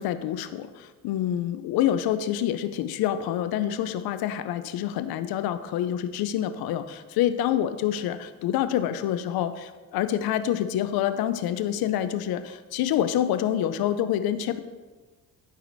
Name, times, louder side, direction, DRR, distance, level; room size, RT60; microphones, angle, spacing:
voice 1, 0.0-14.6, left 11 dB, 80° left, 11 dB, 0.6 m, -27 dB
12.0 x 4.9 x 4.0 m, 1.3 s
cardioid pair, 75°, 36 cm